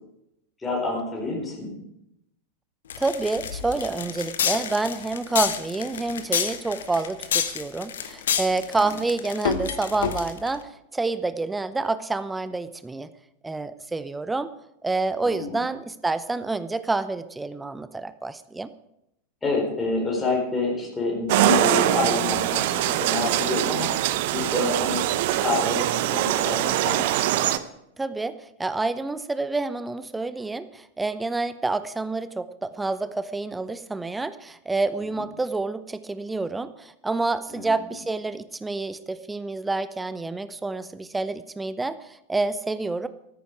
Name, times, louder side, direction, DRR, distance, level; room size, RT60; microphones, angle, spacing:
voice 1, 0.6-1.7 8.7-8.9 15.2-15.6 19.4-23.9 24.3-25.0 25.4-27.0 37.5-37.9, left 3 dB, 10° left, -2 dB, 4.4 m, -28 dB
sound 1, 2.9-10.6, left 7 dB, 60° left, 1.3 m, -28 dB
voice 2, 3.0-13.1 13.4-14.5 14.8-18.7 24.6-24.9 28.0-43.1, right 3 dB, 10° right, 14 dB, 0.8 m, -28 dB
sound 2, 21.3-27.6, right 14 dB, 50° right, 0.8 m, -23 dB
14.0 x 13.5 x 4.8 m, 0.82 s
figure-of-eight pair, 90°, 0 cm